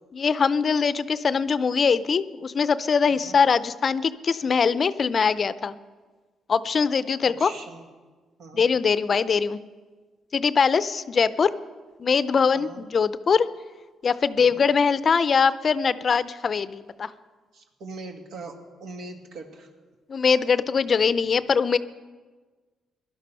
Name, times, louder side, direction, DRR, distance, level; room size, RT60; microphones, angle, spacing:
voice 1, 0.1-5.8 6.5-7.5 8.5-9.6 10.3-11.5 12.0-13.5 14.0-17.1 20.1-21.8, left 5 dB, 45° left, 15 dB, 0.5 m, -22 dB
voice 2, 3.1-3.4 7.2-7.9 8.4-8.7 12.5-12.8 14.4-14.6 17.5-19.7, right 3 dB, 75° right, 4 dB, 1.9 m, -41 dB
17.0 x 11.5 x 5.6 m, 1.4 s
cardioid pair, 90°, 0 cm